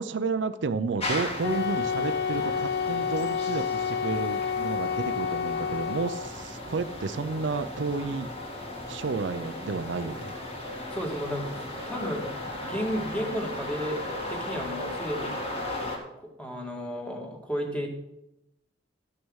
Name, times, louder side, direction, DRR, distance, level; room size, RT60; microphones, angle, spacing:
voice 1, 0.0-8.3 8.9-10.3, right 4 dB, 65° right, 11 dB, 0.5 m, -31 dB
sound 1, 1.0-16.0, left 1 dB, 35° left, 2.5 m, -36 dB
Wind instrument woodwind instrument, 1.4-6.3, left 7 dB, 60° left, 0.4 m, -29 dB
voice 2, 10.9-12.2 12.6-14.0 14.3-15.4 16.4-17.9, equal, 5° left, 1 dB, 1.9 m, -33 dB
12.5 x 6.3 x 6.3 m, 0.88 s
head